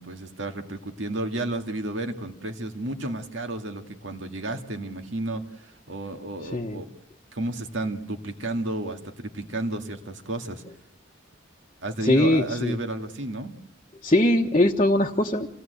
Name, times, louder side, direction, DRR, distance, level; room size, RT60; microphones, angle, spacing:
voice 1, 0.0-6.9 7.3-10.6 11.8-13.5, right 2 dB, 70° right, 5 dB, 2.0 m, -32 dB
voice 2, 12.0-12.8 14.0-15.5, left 1 dB, 30° left, -1 dB, 1.2 m, -21 dB
27.5 x 17.0 x 8.0 m, 0.79 s
head